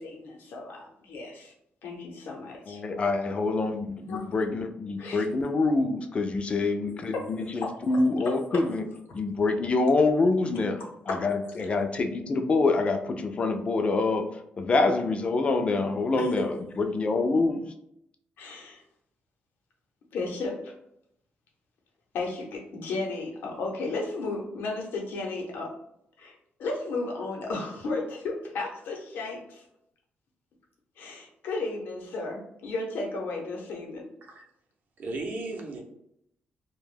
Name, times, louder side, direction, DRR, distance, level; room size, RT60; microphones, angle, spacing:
voice 1, 0.0-1.5 1.8-2.8 4.1-4.2 5.0-5.2 7.1-7.7 8.5-8.6 11.1-11.2 16.2-16.3 18.4-18.8 20.1-20.7 22.1-25.7 26.2-29.6 31.0-34.1, left 3 dB, 85° left, 0 dB, 0.7 m, -34 dB
voice 2, 2.7-8.8 9.1-17.7, left 3 dB, 35° left, 6 dB, 0.3 m, -26 dB
voice 3, 35.0-35.8, right 2 dB, 55° right, 1 dB, 0.6 m, -35 dB
2.2 x 2.1 x 3.2 m, 0.76 s
cardioid pair, 135°, 3 cm